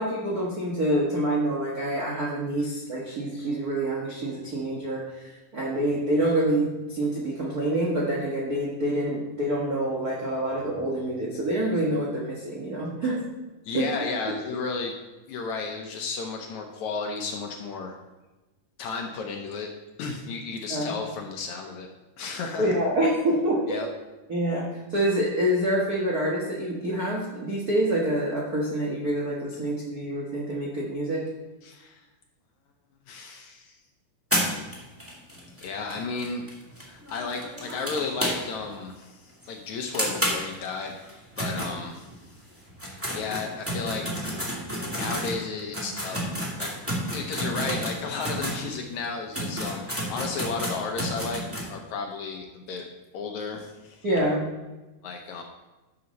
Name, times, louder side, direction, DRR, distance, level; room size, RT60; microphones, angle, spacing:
voice 1, 0.0-13.3 13.7-13.9 20.7-20.9 22.6-23.8 24.3-31.2 54.0-54.4, right 1 dB, 60° right, -3 dB, 0.9 m, -26 dB
voice 2, 13.7-15.0 15.3-18.0 18.8-19.7 20.0-21.9 22.2-22.8 23.7-23.9 31.6-32.0 33.1-33.8 35.6-36.4 36.8-41.0 41.4-42.1 42.8-44.4 44.9-46.3 46.6-46.8 47.1-51.4 51.7-52.9 53.1-54.1 55.0-55.4, left 4 dB, 70° left, 3 dB, 1.9 m, -33 dB
sound 1, 34.3-38.7 39.0-39.1 39.4-39.5 39.9-42.3 42.7-48.6 49.0-49.1 49.3-51.7, equal, 5° right, 1.3 m, -31 dB
11.0 x 7.0 x 4.1 m, 1.1 s
omnidirectional pair, 4.0 m